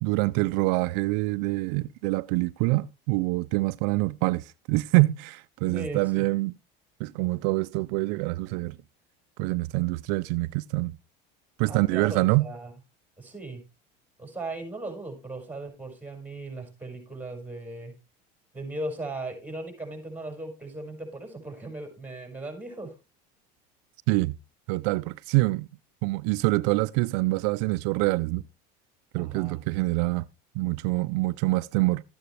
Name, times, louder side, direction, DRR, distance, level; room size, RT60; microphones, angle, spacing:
voice 1, 0.0-6.5 7.0-8.8 9.4-11.0 11.6-12.5 24.1-24.4 24.7-25.7 26.0-28.4 29.1-30.3 30.5-32.0, right 22 dB, 75° right, 0.5 m, -25 dB
voice 2, 5.6-6.3 11.7-12.7 13.2-13.6 14.2-17.9 18.5-23.0 29.2-29.6, right 2 dB, 5° right, 5.6 m, -38 dB
14.0 x 9.2 x 3.3 m
supercardioid pair, 115°, 21 cm